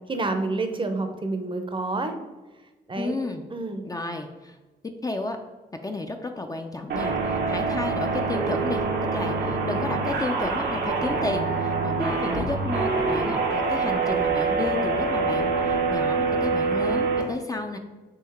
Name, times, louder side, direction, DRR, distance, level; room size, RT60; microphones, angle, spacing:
voice 1, 0.1-2.1 2.9-3.2 3.5-3.8, right 2 dB, 30° right, 6 dB, 0.6 m, -28 dB
voice 2, 3.0-3.4 3.8-4.6 5.0-5.4 5.8-8.8 9.1-17.8, left 2 dB, 20° left, 5 dB, 0.4 m, -32 dB
sound 1, 6.9-17.2, right 4 dB, 85° right, 0.9 m, -25 dB
3.8 x 3.0 x 4.2 m, 1.2 s
cardioid pair, 70°, 17 cm